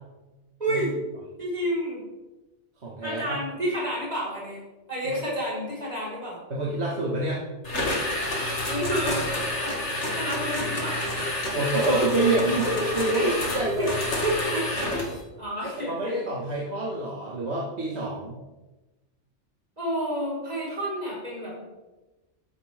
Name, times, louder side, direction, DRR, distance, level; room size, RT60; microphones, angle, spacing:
voice 1, 0.6-1.0 1.4-2.0 3.0-4.6 4.9-6.4 8.7-9.2 9.6-9.8 10.1-11.0 13.1-13.3 13.8-13.9 14.2-14.7 14.9-15.1 15.4-16.2 19.8-21.6, equal, 35° right, -5 dB, 5.3 m, -29 dB
voice 2, 2.8-3.4 6.5-7.4 11.5-14.0 15.8-18.4, right 2 dB, 65° right, -4 dB, 2.2 m, -27 dB
sound 1, 7.6-15.2, left 1 dB, 75° left, 2.7 m, -29 dB
14.0 x 10.5 x 3.7 m, 1.1 s
omnidirectional pair, 1.2 m